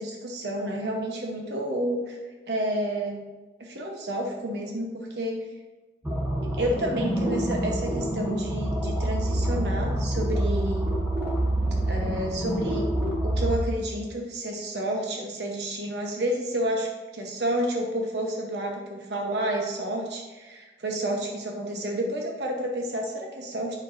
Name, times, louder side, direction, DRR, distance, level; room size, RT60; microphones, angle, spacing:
voice 1, 0.0-2.2 2.5-3.2 3.6-5.4 6.5-10.9 11.8-12.9 13.2-23.8, right 1 dB, 75° right, 0 dB, 1.0 m, -30 dB
sound 1, 6.0-13.6, right 1 dB, 15° right, 1.3 m, -27 dB
8.2 x 6.0 x 2.6 m, 1.2 s
head